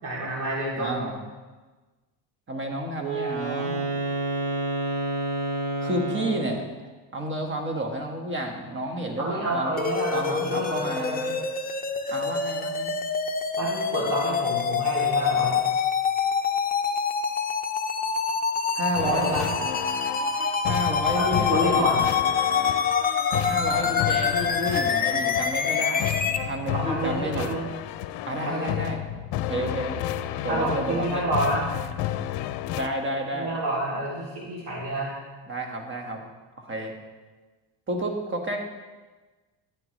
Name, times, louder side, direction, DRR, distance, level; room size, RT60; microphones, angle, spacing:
voice 1, 0.0-1.1 9.2-11.3 13.6-15.6 19.0-19.4 21.1-22.1 26.7-27.7 28.4-28.8 30.5-31.6 33.3-35.1, right 1 dB, 60° right, -5 dB, 3.3 m, -29 dB
voice 2, 0.8-1.2 2.5-3.9 5.8-6.7 7.1-9.7 10.1-11.2 12.1-12.9 18.7-19.5 20.7-21.9 23.5-27.5 28.3-29.0 29.5-30.1 30.4-31.2 32.7-33.6 35.5-36.2 36.6-36.9 37.9-38.6, right 1 dB, 25° right, 2 dB, 1.8 m, -30 dB
Wind instrument woodwind instrument, 3.0-6.7, right 2 dB, 90° right, 2.9 m, -29 dB
sound 1, 9.8-26.4, left 6 dB, 20° left, 0.7 m, -26 dB
sound 2, 18.9-32.9, left 12 dB, 70° left, 0.7 m, -32 dB
13.0 x 9.9 x 3.3 m, 1.3 s
cardioid pair, 115°, 43 cm